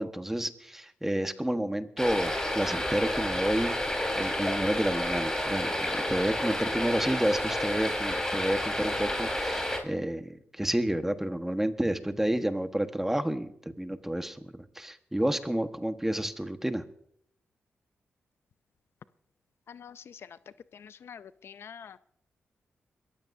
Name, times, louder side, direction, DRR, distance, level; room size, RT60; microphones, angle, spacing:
voice 1, 0.0-3.8 4.1-16.8, right 1 dB, 10° right, 8 dB, 1.3 m, -30 dB
sound 1, 2.0-9.8, left 1 dB, 15° left, 4.3 m, -30 dB
voice 2, 19.7-20.2 20.8-22.0, left 7 dB, 65° left, 15 dB, 0.4 m, -46 dB
22.5 x 14.5 x 2.7 m, 0.69 s
cardioid pair, 65°, 4 cm